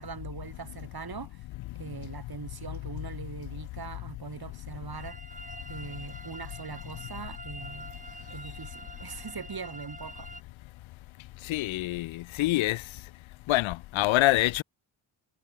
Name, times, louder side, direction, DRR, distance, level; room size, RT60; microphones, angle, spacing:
voice 1, 0.0-1.5 1.7-5.2 5.7-8.0 8.3-10.3, right 5 dB, 50° right, 6.2 m, -41 dB
sound 1, 4.9-10.4, right 2 dB, 15° right, 3.7 m, -46 dB
voice 2, 11.4-13.1 13.5-14.6, left 18 dB, 75° left, 0.5 m, -26 dB
cardioid pair, 55°, 48 cm